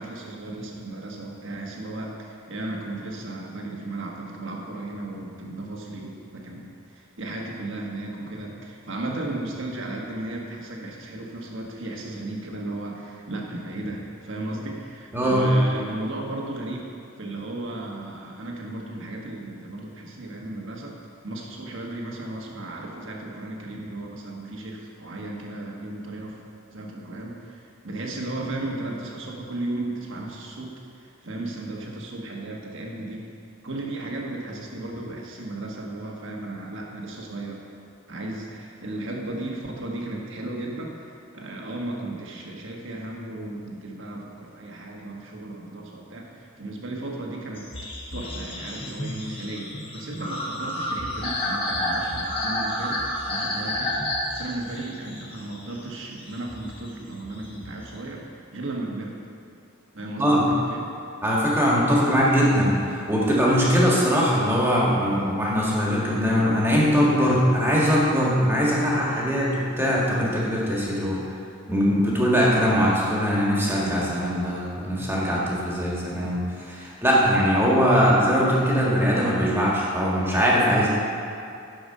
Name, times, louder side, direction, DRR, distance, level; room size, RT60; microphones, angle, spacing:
voice 1, 0.0-16.9 17.2-21.0 21.2-26.4 26.7-33.3 33.6-37.6 38.1-47.7 48.1-59.2 59.9-60.9, right 2 dB, 55° right, -1 dB, 1.4 m, -35 dB
voice 2, 15.1-15.5 60.2-60.4 61.2-71.2 71.7-80.9, equal, 10° right, -5 dB, 1.7 m, -21 dB
sound 1, 47.6-58.0, left 1 dB, 25° left, 1.4 m, -30 dB
10.5 x 6.8 x 5.5 m, 2.5 s
head